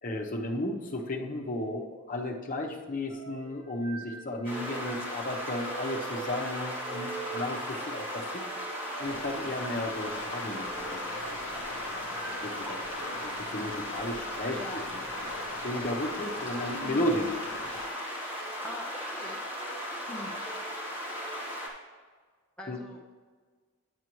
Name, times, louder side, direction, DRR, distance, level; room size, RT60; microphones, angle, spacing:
voice 1, 0.0-8.4 9.0-11.0 12.4-12.8 13.0-15.0 15.3-17.3 22.7-22.8, left 1 dB, 40° left, 2 dB, 0.9 m, -34 dB
sound 1, 3.1-13.0 13.8-14.1 16.1-16.4 17.2-17.7 18.3-18.6 19.3-19.8 20.3-21.4, right 4 dB, 65° right, 1.7 m, -45 dB
sound 2, 4.4-21.7, equal, 25° right, 2.0 m, -37 dB
Stream, 9.0-17.9, left 4 dB, 60° left, 0.5 m, -43 dB
voice 2, 14.5-14.8 16.8-17.1 18.6-19.4 20.1-20.3 22.6-23.1, left 1 dB, 5° left, -2 dB, 0.5 m, -42 dB
9.2 x 9.0 x 3.1 m, 1.5 s
head